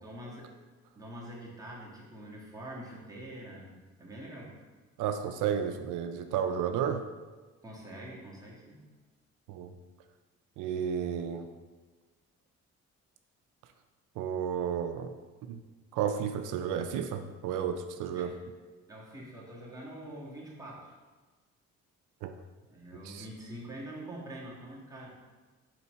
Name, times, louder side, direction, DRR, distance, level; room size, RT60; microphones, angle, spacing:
voice 1, 0.0-0.5 1.0-4.5 7.6-8.9 18.1-18.3 18.9-20.9 22.7-25.1, right 1 dB, 10° right, -5 dB, 1.9 m, -45 dB
voice 2, 5.0-7.0 9.5-9.7 10.6-11.5 14.2-15.1 15.4-15.6 15.9-18.3 22.2-22.3 23.0-23.3, right 8 dB, 90° right, 7 dB, 0.5 m, -32 dB
4.6 x 4.3 x 5.4 m, 1.3 s
cardioid pair, 90°, 30 cm